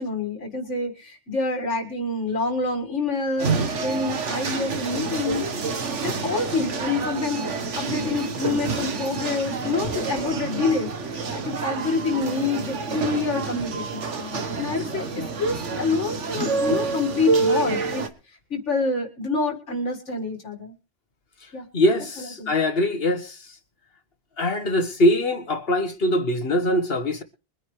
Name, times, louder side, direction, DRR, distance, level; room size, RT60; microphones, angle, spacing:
voice 1, 0.0-7.4 7.8-18.0 18.5-20.8 21.5-21.6 22.2-22.5, left 3 dB, 90° left, 2.4 m, -27 dB
sound 1, 3.4-18.1, right 4 dB, 90° right, 1.7 m, -28 dB
voice 2, 21.7-23.4 24.4-27.2, left 1 dB, 55° left, 1.7 m, -22 dB
23.0 x 10.5 x 3.3 m
omnidirectional pair, 1.2 m